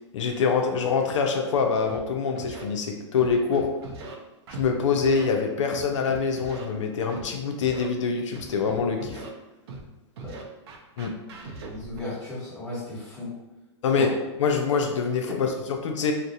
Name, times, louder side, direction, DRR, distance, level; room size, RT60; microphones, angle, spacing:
voice 1, 0.1-3.7 4.5-9.2 11.0-11.1 13.8-16.1, left 5 dB, 75° left, 3 dB, 0.4 m, -25 dB
Scratching (performance technique), 1.9-2.0 2.4-2.6 3.2-4.1 4.5-4.7 5.0-5.3 5.7-6.6 7.1-7.2 7.6-7.9 8.3-9.3 9.7-9.8 10.2-12.0, right 3 dB, 55° right, 0.5 m, -39 dB
voice 2, 11.5-13.3 13.9-14.1, left 2 dB, 5° left, -12 dB, 1.1 m, -35 dB
2.4 x 2.0 x 2.7 m, 1.1 s
hypercardioid pair, 145°, 16 cm